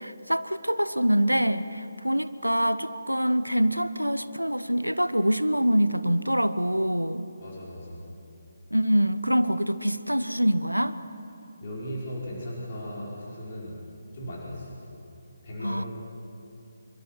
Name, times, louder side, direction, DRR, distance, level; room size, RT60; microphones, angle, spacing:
voice 1, 0.0-7.3 8.7-11.0 15.6-15.8, equal, 85° right, 13 dB, 1.0 m, -25 dB
voice 2, 7.4-8.0 11.6-13.8 14.1-14.8 15.4-15.9, equal, 35° left, -5 dB, 5.5 m, -37 dB
25.0 x 24.0 x 6.1 m, 2.7 s
figure-of-eight pair, 145°, 0 cm